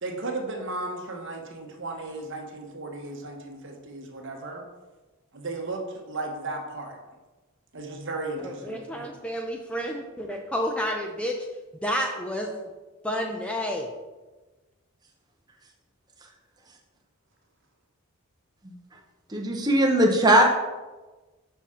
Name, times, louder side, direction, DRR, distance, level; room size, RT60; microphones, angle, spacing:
voice 1, 0.0-4.6 5.3-7.0 7.7-9.1, right 2 dB, 55° right, 2 dB, 1.0 m, -35 dB
voice 2, 8.4-11.4 11.8-12.5 13.0-13.9, equal, 5° left, 1 dB, 0.4 m, -30 dB
voice 3, 19.3-20.4, right 1 dB, 20° right, 0 dB, 0.8 m, -19 dB
5.8 x 5.5 x 3.7 m, 1.2 s
head